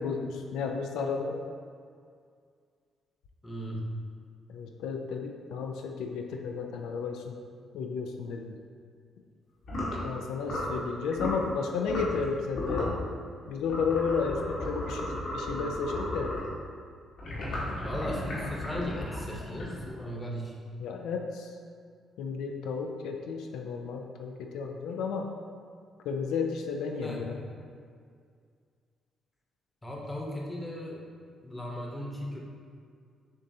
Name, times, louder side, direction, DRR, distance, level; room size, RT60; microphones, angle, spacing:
voice 1, 0.0-1.4 4.5-7.4 7.7-8.5 10.0-13.0 13.5-16.3 20.8-21.6 22.2-25.3 26.1-27.4, left 5 dB, 90° left, 3 dB, 0.3 m, -33 dB
voice 2, 3.4-3.8 17.8-20.5 27.0-27.2 29.8-31.0 31.4-32.4, equal, 15° left, -2 dB, 0.9 m, -37 dB
sound 1, 9.6-10.0 10.4-10.8 11.1-11.4 11.9-12.2 12.5-13.0 13.7-16.5 17.2-20.0, left 1 dB, 70° left, 1.2 m, -34 dB
6.9 x 2.6 x 2.7 m, 2.2 s
cardioid pair, 90°, 0 cm